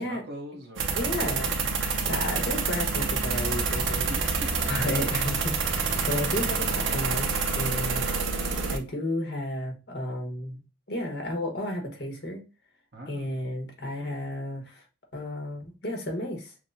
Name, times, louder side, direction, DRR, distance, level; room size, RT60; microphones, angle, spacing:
voice 1, 0.0-1.3 4.1-5.0 12.9-13.3, right 1 dB, 60° right, 0.9 m, -42 dB
sound 1, 0.8-8.8, right 4 dB, 90° right, 0.7 m, -27 dB
voice 2, 0.9-1.6 2.1-4.1 4.6-8.0 8.7-10.6 10.9-12.4 13.1-14.8 15.1-16.5, left 1 dB, 60° left, 1.3 m, -32 dB
6.0 x 2.2 x 2.6 m
head